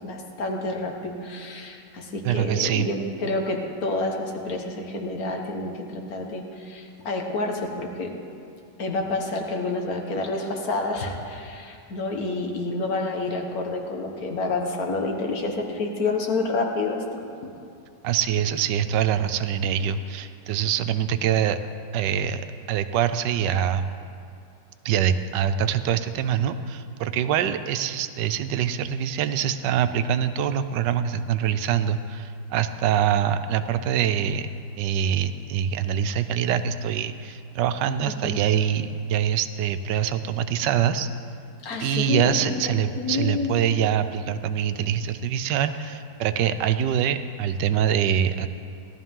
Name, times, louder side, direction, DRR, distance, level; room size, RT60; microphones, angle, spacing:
voice 1, 0.0-8.1 8.8-17.2 38.2-38.4 41.6-43.5, left 3 dB, 55° left, 2 dB, 1.8 m, -29 dB
voice 2, 2.2-2.9 18.0-21.6 21.9-23.9 24.8-34.5 34.8-41.1 41.8-48.5, right 9 dB, 80° right, 11 dB, 1.2 m, -24 dB
17.5 x 12.5 x 3.7 m, 2.4 s
omnidirectional pair, 1.9 m